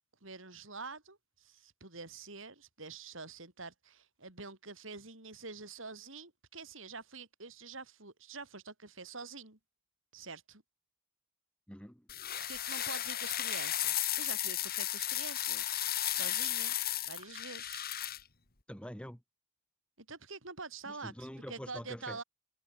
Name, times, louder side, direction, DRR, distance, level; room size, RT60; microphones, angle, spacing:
voice 1, 0.2-9.6 10.1-10.6 12.5-15.8 16.1-16.7 17.1-17.9 20.0-22.2, right 4 dB, 70° right, 5.6 m, -46 dB
voice 2, 11.7-12.1 18.7-19.2 20.9-22.2, equal, 5° left, 2.8 m, -45 dB
sound 1, 12.1-18.2, left 12 dB, 50° left, 2.9 m, -34 dB
head